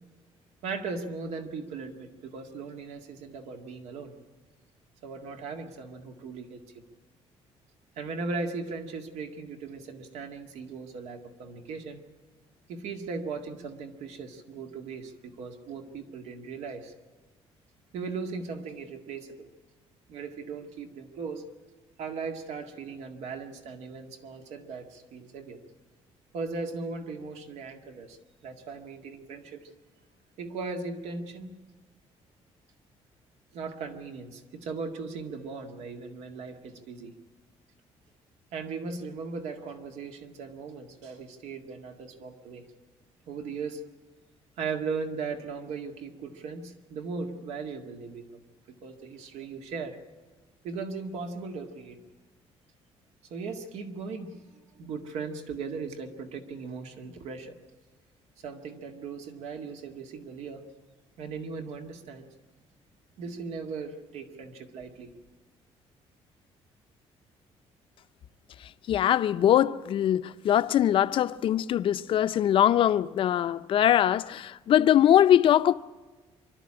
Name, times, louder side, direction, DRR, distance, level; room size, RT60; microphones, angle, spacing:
voice 1, 0.6-4.1 5.0-6.8 8.0-12.0 12.7-16.9 17.9-19.5 20.1-21.4 22.0-25.6 26.3-28.2 28.4-29.7 30.4-31.6 33.5-37.1 38.5-42.7 43.3-43.8 44.6-48.4 48.8-50.0 50.6-52.0 53.3-54.4 54.7-57.6 58.4-60.7 61.2-62.3 63.2-65.1, right 4 dB, 80° right, 2.0 m, -38 dB
voice 2, 68.9-75.7, left 11 dB, 50° left, 0.6 m, -22 dB
25.5 x 12.5 x 8.8 m
cardioid pair, 160°, 11 cm